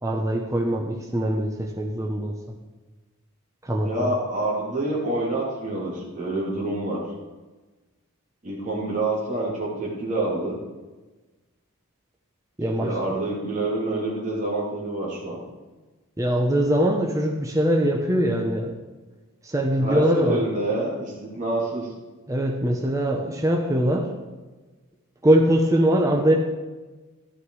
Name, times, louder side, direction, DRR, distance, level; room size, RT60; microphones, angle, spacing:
voice 1, 0.0-2.3 3.6-4.1 12.6-13.0 16.2-18.7 19.4-20.4 22.3-24.1 25.2-26.3, right 1 dB, 15° right, 2 dB, 0.9 m, -22 dB
voice 2, 3.8-7.0 8.4-10.6 12.8-15.4 19.7-21.9, right 2 dB, 35° right, -5 dB, 3.0 m, -27 dB
13.0 x 11.0 x 4.8 m, 1.2 s
head